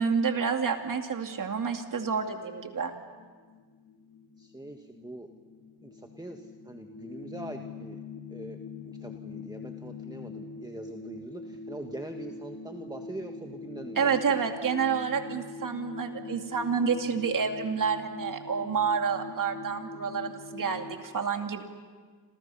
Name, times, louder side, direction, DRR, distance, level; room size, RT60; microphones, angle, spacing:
voice 1, 0.0-2.9 14.0-21.6, right 6 dB, 55° right, 5 dB, 2.6 m, -29 dB
sound 1, 2.3-21.0, left 3 dB, 60° left, 2.6 m, -43 dB
voice 2, 4.4-5.3 5.8-8.0 8.3-14.5, right 1 dB, 10° right, 3 dB, 1.6 m, -43 dB
29.5 x 27.0 x 5.7 m, 1.5 s
cardioid pair, 85°, 40 cm